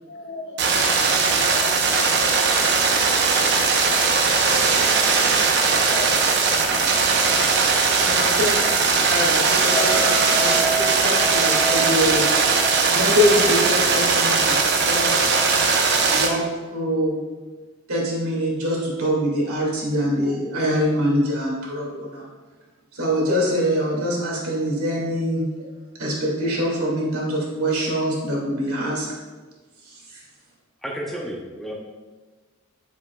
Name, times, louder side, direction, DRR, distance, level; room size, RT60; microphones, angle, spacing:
voice 1, 0.1-0.9 1.1-2.2 4.1-4.8 5.6-8.4, left 3 dB, 50° left, -4 dB, 1.6 m, -40 dB
sound 1, 0.6-16.3, right 4 dB, 50° right, 0.7 m, -19 dB
voice 2, 8.0-8.6 9.1-10.0 10.3-12.3 12.9-14.6 14.9-15.3 16.1-16.4 16.7-17.2 17.9-22.2 22.9-25.5 26.0-29.1, equal, 85° right, -3 dB, 2.2 m, -24 dB
sound 2, 9.7-15.0 15.3-15.6, right 3 dB, 30° left, 1.2 m, -30 dB
voice 3, 30.8-31.8, equal, ahead, -2 dB, 0.6 m, -31 dB
7.6 x 7.3 x 2.3 m, 1.3 s
head